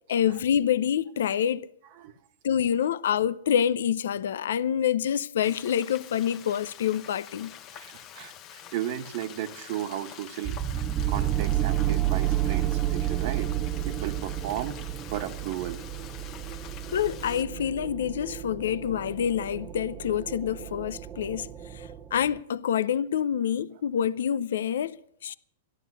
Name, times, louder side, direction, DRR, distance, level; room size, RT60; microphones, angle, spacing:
voice 1, 0.1-1.7 2.4-7.5 16.9-21.5 21.7-25.3, left 9 dB, 75° left, 0.6 m, -27 dB
Frying (food), 5.4-17.4, left 10 dB, 35° left, 1.2 m, -46 dB
voice 2, 7.7-14.8 15.1-15.8, right 12 dB, 50° right, 1.4 m, -35 dB
sound 1, 10.4-22.4, right 12 dB, 25° right, 0.6 m, -31 dB
13.5 x 11.5 x 8.2 m
hypercardioid pair, 135°, 0 cm